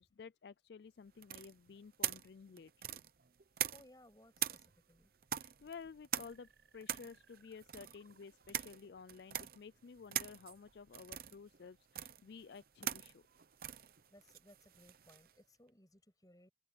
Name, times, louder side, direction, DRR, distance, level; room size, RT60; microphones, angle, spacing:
voice 1, 0.0-3.0 5.4-13.2, left 5 dB, 60° left, 0.4 m, -53 dB
sound 1, 1.2-4.0 4.4-15.3, right 11 dB, 50° right, 0.8 m, -43 dB
voice 2, 3.7-5.1 14.1-16.5, left 1 dB, 20° left, 6.5 m, -63 dB
sound 2, 6.3-9.8, right 4 dB, 70° right, 6.6 m, -70 dB
open air
head